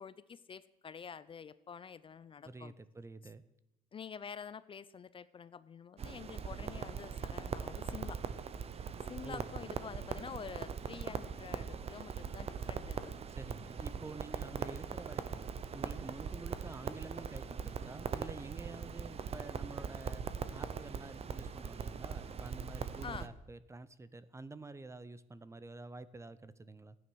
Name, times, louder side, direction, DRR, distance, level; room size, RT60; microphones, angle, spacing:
voice 1, 0.0-2.7 3.9-8.2 9.0-13.2 23.0-23.3, left 6 dB, 30° left, 16 dB, 0.5 m, -48 dB
voice 2, 2.4-3.4 9.2-9.5 13.3-20.2 20.5-27.0, right 3 dB, 15° right, 16 dB, 0.6 m, -49 dB
Crackle, 6.0-23.3, right 6 dB, 35° right, 0.9 m, -41 dB
14.5 x 9.5 x 6.3 m, 0.87 s
cardioid pair, 110°, 17 cm